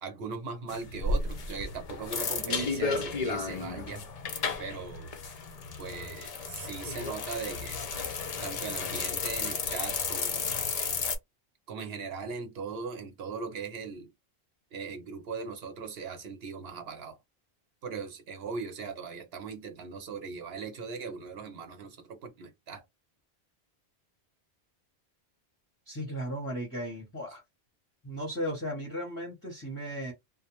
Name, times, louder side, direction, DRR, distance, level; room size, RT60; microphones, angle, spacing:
voice 1, 0.0-4.0 4.6-5.1 5.8-10.4 11.7-14.1 14.7-17.2 17.8-22.8, right 5 dB, 70° right, 1.0 m, -39 dB
sound 1, 0.7-11.2, left 4 dB, 50° left, 0.5 m, -33 dB
voice 2, 25.9-27.4 28.0-30.1, equal, 15° left, 0.8 m, -36 dB
2.5 x 2.0 x 3.0 m
omnidirectional pair, 1.1 m